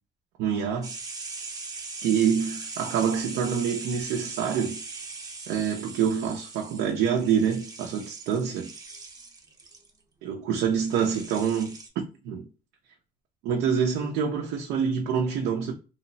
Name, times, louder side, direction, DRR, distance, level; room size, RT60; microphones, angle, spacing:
voice 1, 0.4-0.9 2.0-4.8 5.5-8.7 10.2-12.5 13.4-15.7, right 7 dB, 85° right, 0.6 m, -26 dB
sound 1, 0.8-9.9 10.8-11.9, right 4 dB, 20° right, 0.6 m, -40 dB
3.0 x 2.0 x 2.5 m
cardioid pair, 110°, 17 cm